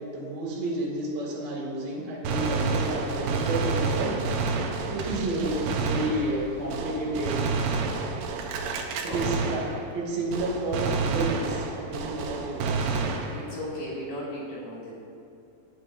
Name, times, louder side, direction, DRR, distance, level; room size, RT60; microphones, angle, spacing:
voice 1, 0.0-4.2 4.9-7.4 9.0-9.6 9.9-12.8, right 2 dB, 65° right, -3 dB, 3.9 m, -30 dB
Gunshot gunfire, 2.2-10.0 10.3-13.7, right 4 dB, 80° right, 2.8 m, -29 dB
voice 2, 13.3-14.9, left 1 dB, 60° left, -7 dB, 4.0 m, -36 dB
19.0 x 8.3 x 2.6 m, 2.6 s
omnidirectional pair, 4.7 m